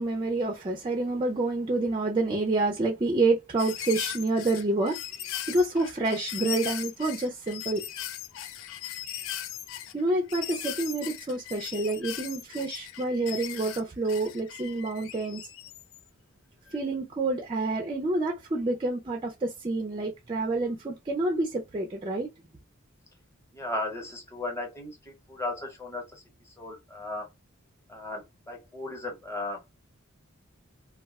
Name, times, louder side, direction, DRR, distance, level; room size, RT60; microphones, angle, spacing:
voice 1, 0.0-5.0 5.5-7.8 9.9-15.4 16.7-22.3, right 2 dB, 25° right, 0.4 m, -28 dB
sound 1, 3.6-16.0 16.7-16.8, left 11 dB, 65° left, 0.3 m, -38 dB
voice 2, 23.5-27.3 27.9-29.6, left 2 dB, 15° left, 1.0 m, -36 dB
2.3 x 2.1 x 3.4 m
head